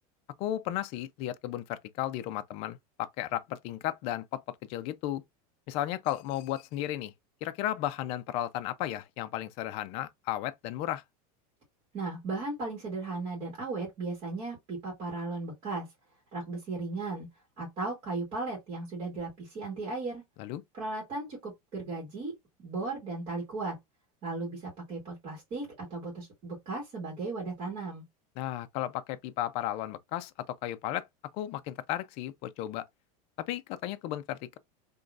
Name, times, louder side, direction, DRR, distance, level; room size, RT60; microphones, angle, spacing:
voice 1, 0.4-4.4 4.7-5.2 5.7-7.1 7.4-11.0 20.4-20.6 28.4-31.1 31.3-32.9 33.4-34.6, left 13 dB, 30° left, 0.3 m, -34 dB
voice 2, 11.9-15.9 16.3-17.3 17.6-20.2 20.7-22.3 22.6-23.8 24.2-28.0, right 3 dB, 30° right, 1.9 m, -36 dB
3.8 x 3.0 x 2.3 m
supercardioid pair, 170°, 19 cm